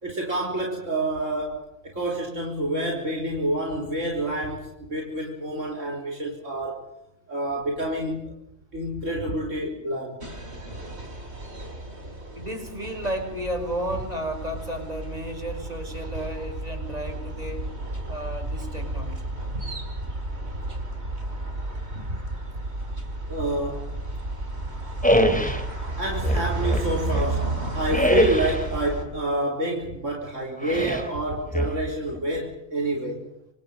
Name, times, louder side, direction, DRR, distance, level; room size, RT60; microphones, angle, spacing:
voice 1, 0.0-7.0 7.3-8.4 8.7-10.2 19.5-19.6 21.9-22.2 23.3-23.9 26.0-33.3, right 1 dB, 75° right, 0 dB, 4.5 m, -28 dB
sound 1, 10.2-29.0, right 2 dB, 60° right, 4.8 m, -33 dB
voice 2, 12.3-17.7 18.1-19.3, right 1 dB, 30° right, 5 dB, 6.3 m, -33 dB
sound 2, 25.0-25.7 26.2-27.4 27.9-28.7 30.6-31.1 31.5-32.2, equal, 5° left, 3.8 m, -23 dB
28.0 x 26.0 x 5.4 m, 0.77 s
omnidirectional pair, 1.3 m